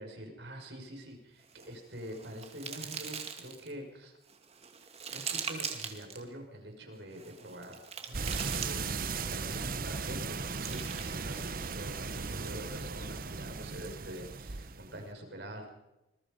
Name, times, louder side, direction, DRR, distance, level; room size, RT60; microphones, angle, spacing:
voice 1, 0.0-4.2 5.1-15.7, equal, 85° right, 3 dB, 5.8 m, -45 dB
sound 1, 1.4-3.7 4.3-6.2 7.1-9.3 10.2-11.8, right 6 dB, 35° right, 2.3 m, -42 dB
sound 2, 8.1-15.0, right 4 dB, 55° right, 1.0 m, -37 dB
26.5 x 21.0 x 5.3 m, 0.95 s
head